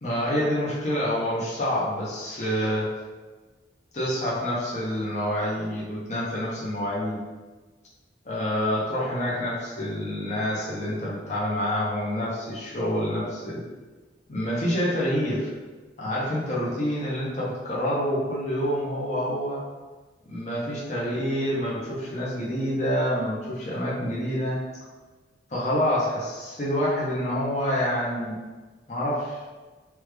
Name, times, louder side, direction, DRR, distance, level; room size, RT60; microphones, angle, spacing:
voice 1, 0.0-2.9 3.9-7.2 8.2-13.6 14.3-15.5 16.0-19.6 20.3-24.6 25.5-28.4 28.9-29.4, equal, 40° left, -7 dB, 0.7 m, -27 dB
3.0 x 2.3 x 3.3 m, 1.3 s
head